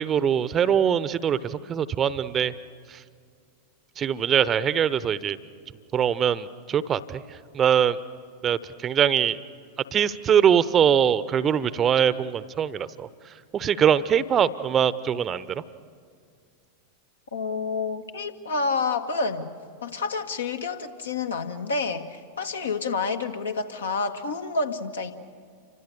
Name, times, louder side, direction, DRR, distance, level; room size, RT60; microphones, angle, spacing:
voice 1, 0.0-2.5 2.9-3.0 4.0-5.4 5.9-7.2 7.5-8.0 8.4-9.4 9.9-13.1 13.5-15.6, right 8 dB, 25° right, 16 dB, 0.8 m, -22 dB
voice 2, 17.3-19.5 19.8-25.1, left 4 dB, 70° left, 6 dB, 1.5 m, -29 dB
28.5 x 25.0 x 6.8 m, 2.1 s
figure-of-eight pair, 90°, 0 cm